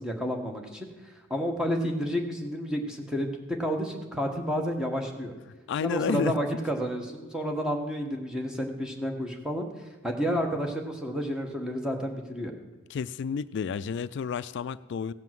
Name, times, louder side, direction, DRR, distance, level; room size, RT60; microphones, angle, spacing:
voice 1, 0.0-5.3 5.8-9.7 10.0-12.5, equal, 5° right, 2 dB, 1.4 m, -30 dB
voice 2, 5.7-6.4 12.9-15.1, left 6 dB, 60° left, 16 dB, 0.3 m, -30 dB
16.5 x 5.7 x 7.6 m, 1.2 s
head